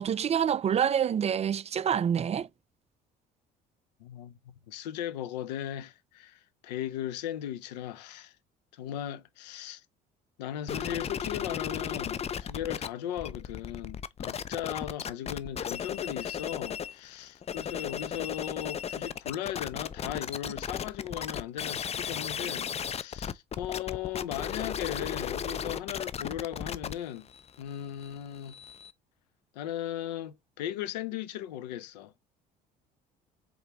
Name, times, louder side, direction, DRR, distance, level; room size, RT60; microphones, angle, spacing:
voice 1, 0.0-2.5, right 8 dB, 30° right, 0.4 m, -27 dB
voice 2, 4.0-8.3 8.7-9.8 10.4-27.3 27.6-28.6 29.5-32.1, left 11 dB, 85° left, 0.6 m, -37 dB
sound 1, 10.7-12.9 13.1-17.0 17.3-28.9, left 8 dB, 30° left, 0.5 m, -35 dB
4.8 x 3.6 x 3.0 m
hypercardioid pair, 65°, 21 cm